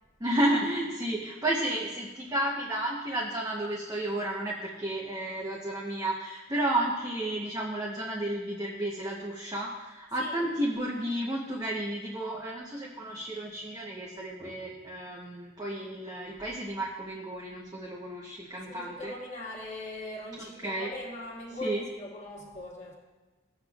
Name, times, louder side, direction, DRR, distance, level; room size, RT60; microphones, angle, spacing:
voice 1, 0.2-19.1 20.6-20.9 21.6-21.8, right 1 dB, 20° right, -4 dB, 0.9 m, -32 dB
voice 2, 18.7-23.0, left 1 dB, 35° left, -3 dB, 1.7 m, -40 dB
16.5 x 7.9 x 2.4 m, 1.2 s
head